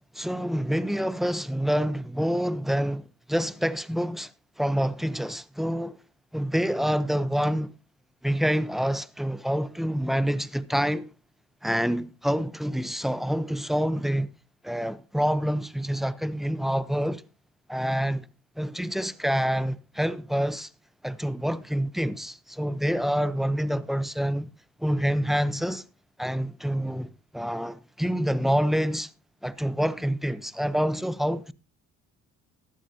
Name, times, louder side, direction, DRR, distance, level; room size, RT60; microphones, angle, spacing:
voice 1, 0.1-4.3 4.6-6.0 6.3-7.7 8.2-11.1 11.6-14.3 14.6-17.2 17.7-18.3 18.6-20.7 21.0-24.5 24.8-25.8 26.2-29.1 29.4-31.5, equal, ahead, 0.8 m, -27 dB
14.5 x 11.0 x 2.8 m
supercardioid pair, 65°, 34 cm